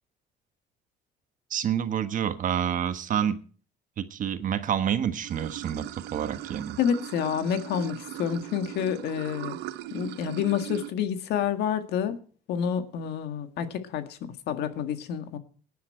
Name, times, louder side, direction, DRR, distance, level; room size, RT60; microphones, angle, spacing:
voice 1, 1.5-3.4 4.0-6.8, right 9 dB, 50° right, 10 dB, 1.3 m, -28 dB
Water / Sink (filling or washing), 5.2-10.9, right 14 dB, 85° right, 0.7 m, -39 dB
voice 2, 6.8-9.6 9.9-12.2 12.5-14.2 14.5-15.4, left 8 dB, 75° left, 8 dB, 1.8 m, -28 dB
18.0 x 10.5 x 4.5 m, 0.42 s
cardioid pair, 110°, 17 cm